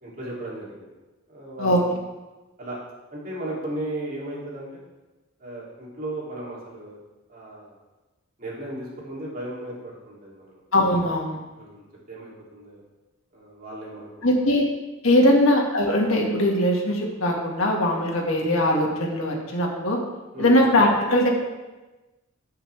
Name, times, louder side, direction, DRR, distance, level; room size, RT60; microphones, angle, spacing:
voice 1, 0.0-0.9 1.3-2.0 2.6-2.8 3.1-4.8 5.4-7.0 7.3-7.8 8.4-10.6 11.6-12.8 13.3-14.2 15.2-15.4 20.3-20.6, right 1 dB, 45° right, -6 dB, 3.0 m, -36 dB
voice 2, 10.7-11.4 14.2-14.6 15.0-20.0 20.4-21.3, left 1 dB, 75° left, -1 dB, 1.9 m, -20 dB
16.5 x 5.7 x 3.4 m, 1.1 s
head